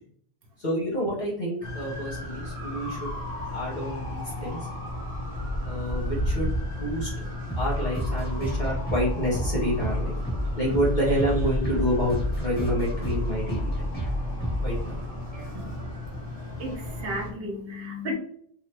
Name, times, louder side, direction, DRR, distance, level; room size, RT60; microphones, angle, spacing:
voice 1, 0.6-3.1 3.5-4.6 5.6-6.5 6.8-7.1 7.6-10.2 10.6-13.9 14.6-14.9, equal, 45° left, -5 dB, 0.9 m, -28 dB
sound 1, 1.6-17.3, left 1 dB, 35° right, 0.9 m, -34 dB
sound 2, 7.5-15.9, equal, 10° left, 1.3 m, -30 dB
voice 2, 16.6-18.1, equal, 60° right, 0 dB, 1.0 m, -33 dB
2.8 x 2.3 x 3.1 m, 0.64 s
omnidirectional pair, 1.2 m